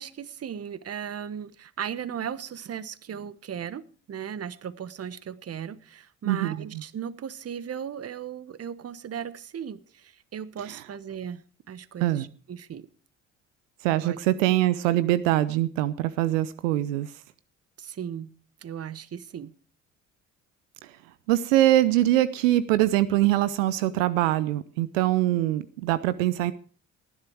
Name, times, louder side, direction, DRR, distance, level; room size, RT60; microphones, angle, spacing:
voice 1, 0.0-3.8 4.1-11.4 11.7-12.9 14.0-14.2 17.8-18.3 18.6-19.5, right 8 dB, 40° right, 17 dB, 1.1 m, -37 dB
voice 2, 6.2-6.8 10.7-10.8 12.0-12.3 13.8-17.1 20.8-20.9 21.3-26.5, right 14 dB, 80° right, 16 dB, 0.7 m, -23 dB
19.0 x 11.0 x 4.6 m, 0.40 s
hypercardioid pair, 50°, 38 cm